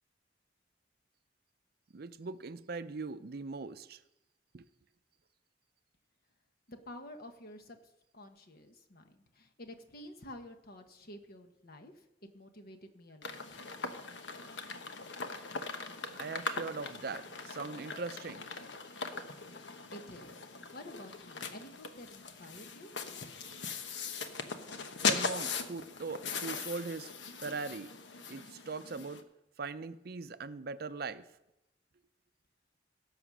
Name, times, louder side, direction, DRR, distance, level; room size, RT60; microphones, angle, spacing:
voice 1, 1.9-4.0 4.5-4.7 16.2-18.4 25.0-27.1 27.4-27.9 28.3-29.2 29.6-31.3, right 4 dB, 55° right, 13 dB, 0.6 m, -40 dB
voice 2, 6.7-7.8 8.1-12.0 12.3-13.4 19.9-20.3 20.7-22.9, left 1 dB, 55° left, 6 dB, 1.3 m, -50 dB
sound 1, 13.2-29.2, left 4 dB, 85° left, 1.1 m, -40 dB
16.5 x 6.9 x 6.2 m, 0.90 s
head